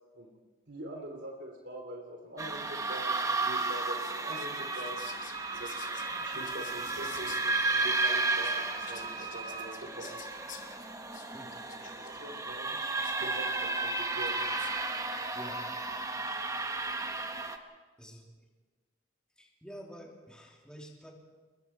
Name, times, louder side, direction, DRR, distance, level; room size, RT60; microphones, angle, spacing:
voice 1, 0.7-5.0 5.5-7.3 7.7-10.2 12.0-12.8 13.2-14.5, right 1 dB, 70° right, 0 dB, 3.1 m, -44 dB
sound 1, 2.4-17.6, right 3 dB, 20° right, 1.4 m, -33 dB
Whispering, 3.6-14.9, left 7 dB, 75° left, 2.7 m, -52 dB
Wind instrument woodwind instrument, 4.3-9.8, right 5 dB, 35° right, 2.0 m, -42 dB
voice 2, 18.0-18.3 19.4-21.1, equal, 5° left, -1 dB, 3.0 m, -48 dB
29.0 x 22.5 x 4.6 m, 1.3 s
head